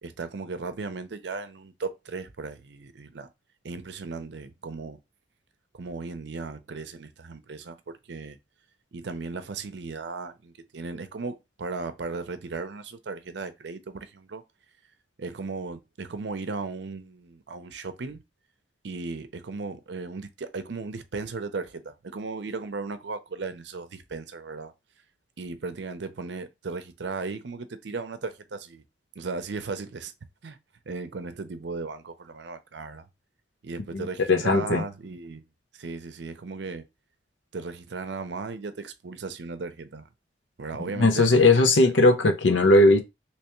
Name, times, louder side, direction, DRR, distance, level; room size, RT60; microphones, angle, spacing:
voice 1, 0.0-3.3 3.6-5.0 5.8-8.4 8.9-14.4 15.2-18.2 18.8-24.7 25.4-28.8 29.2-30.1 30.4-30.6 30.9-33.1 33.6-35.4 35.8-36.8 37.5-40.0 40.6-41.6, right 4 dB, 75° right, 0.6 m, -36 dB
voice 2, 33.9-34.8 40.8-43.0, left 2 dB, 90° left, 0.7 m, -19 dB
3.3 x 3.0 x 3.0 m
head